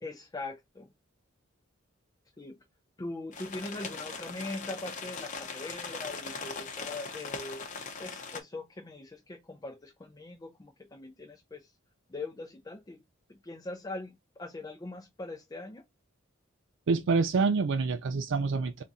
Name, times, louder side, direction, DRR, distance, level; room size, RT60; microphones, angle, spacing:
voice 1, 0.0-0.9 2.4-2.6 3.0-7.6 8.0-11.7 12.1-13.0 13.3-15.8, left 2 dB, 20° left, 0.5 m, -41 dB
sound 1, 3.3-8.4, left 4 dB, 40° left, 0.8 m, -40 dB
voice 2, 16.9-18.8, right 4 dB, 65° right, 0.4 m, -27 dB
3.6 x 2.6 x 4.0 m
head